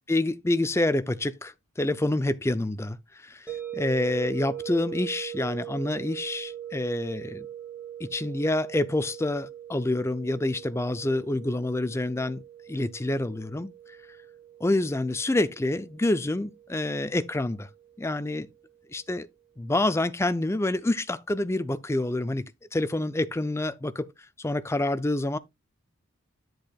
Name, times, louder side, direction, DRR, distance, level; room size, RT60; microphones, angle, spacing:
voice 1, 0.1-1.5 1.8-3.0 3.2-7.5 8.0-12.4 12.7-13.7 14.6-17.7 18.0-18.5 18.9-19.3 19.6-24.1 24.4-25.4, left 2 dB, 10° left, 0.4 m, -27 dB
sound 1, 3.5-18.4, right 10 dB, 5° right, 2.4 m, -41 dB
8.6 x 7.9 x 2.3 m
head